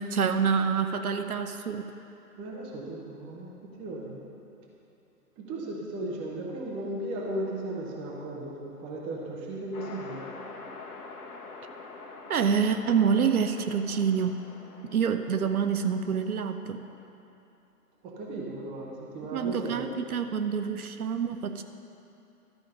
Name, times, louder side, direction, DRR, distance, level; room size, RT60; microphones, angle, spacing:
voice 1, 0.0-1.9 12.3-14.4 14.9-16.8 19.2-21.6, right 6 dB, 65° right, 8 dB, 0.7 m, -27 dB
voice 2, 2.4-4.2 5.4-10.3 18.0-19.9, right 1 dB, 10° right, -3 dB, 0.7 m, -36 dB
sound 1, 9.7-17.1, left 3 dB, 65° left, 1.5 m, -46 dB
12.5 x 5.1 x 6.5 m, 2.8 s
figure-of-eight pair, 135°, 47 cm